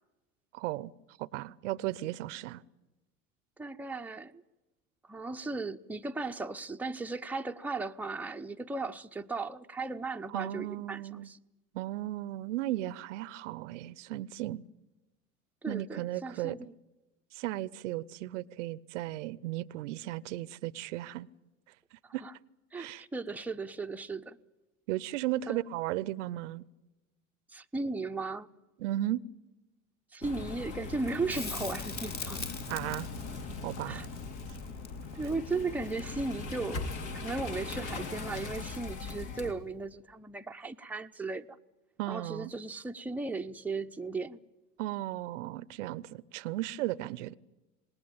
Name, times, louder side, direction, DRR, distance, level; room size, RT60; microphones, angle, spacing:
voice 1, 0.5-0.9 1.2-2.6 10.3-11.3 11.7-14.6 15.7-16.6 17.3-21.3 21.9-22.2 22.7-23.0 24.9-26.7 28.8-29.2 32.7-33.1 33.6-34.1 42.0-42.5 44.8-47.4, right 15 dB, 65° right, 0.8 m, -35 dB
voice 2, 3.6-4.4 5.0-11.4 15.6-16.7 22.0-22.3 22.7-24.4 25.5-25.7 27.5-28.5 30.1-32.5 33.9-34.1 35.2-41.6 42.1-44.4, right 3 dB, 5° right, 0.8 m, -36 dB
sound 1, 30.2-39.5, left 4 dB, 65° left, 3.4 m, -40 dB
Crackle, 31.3-36.4 39.2-39.3, left 4 dB, 25° left, 1.9 m, -42 dB
26.5 x 19.5 x 8.9 m
hypercardioid pair, 80°, 39 cm